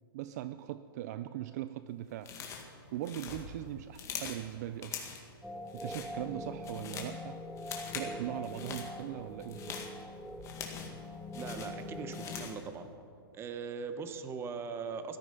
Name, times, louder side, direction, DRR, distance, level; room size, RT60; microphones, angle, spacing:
voice 1, 0.1-2.3 2.9-4.9 5.7-7.4 7.9-9.7, right 13 dB, 45° right, 13 dB, 0.4 m, -40 dB
sound 1, 2.2-2.7 3.0-4.4 4.8-5.3 5.7-6.1 6.5-7.2 7.6-8.1 8.4-8.9 9.4-11.0 11.3-12.6, left 7 dB, 25° left, 1.9 m, -43 dB
sound 2, 5.4-12.5, left 1 dB, ahead, 0.5 m, -43 dB
voice 2, 11.3-12.9 13.3-15.2, right 5 dB, 20° right, 9 dB, 1.0 m, -40 dB
16.5 x 13.5 x 5.3 m, 2.5 s
hypercardioid pair, 135°, 12 cm